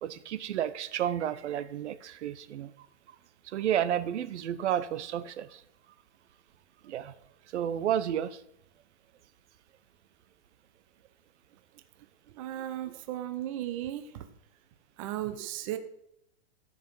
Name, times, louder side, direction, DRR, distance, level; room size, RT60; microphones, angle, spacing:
voice 1, 0.0-2.7 3.5-5.6 6.8-7.1 7.5-8.4 12.9-13.0, right 10 dB, 80° right, 0.8 m, -31 dB
voice 2, 12.4-14.3 15.0-15.8, right 13 dB, 30° right, 0.6 m, -35 dB
13.5 x 5.2 x 5.4 m
supercardioid pair, 170°, 34 cm